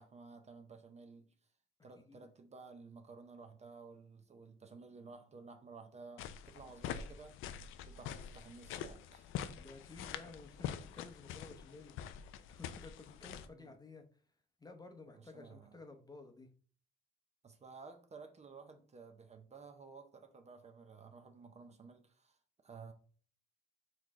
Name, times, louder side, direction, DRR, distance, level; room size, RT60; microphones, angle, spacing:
voice 1, 0.0-1.3 1.8-7.4 7.8-9.5 13.5-13.7 15.1-15.8 17.4-22.4 22.6-22.9, right 4 dB, 35° right, 0.6 m, -54 dB
sound 1, 6.2-13.5, left 9 dB, 90° left, 0.4 m, -45 dB
voice 2, 9.6-14.0 14.6-16.5, left 3 dB, 20° left, 0.7 m, -54 dB
4.3 x 3.2 x 3.6 m
cardioid pair, 90°, 20 cm